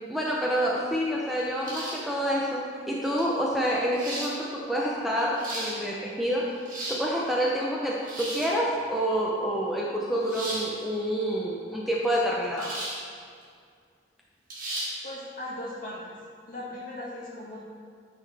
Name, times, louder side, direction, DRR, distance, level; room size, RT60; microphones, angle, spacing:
voice 1, 0.1-6.4 6.9-12.7, equal, ahead, -5 dB, 0.6 m, -28 dB
sound 1, 1.6-2.1 3.2-3.3 3.9-4.3 5.2-5.7 6.5-7.0 8.0-8.5 10.3-10.7 12.6-13.0 13.4-13.5 14.5-14.9, right 1 dB, 45° right, 1.8 m, -35 dB
voice 2, 15.0-16.1 16.5-17.6, left 1 dB, 45° left, -6 dB, 2.0 m, -38 dB
9.5 x 5.8 x 3.4 m, 2.1 s
head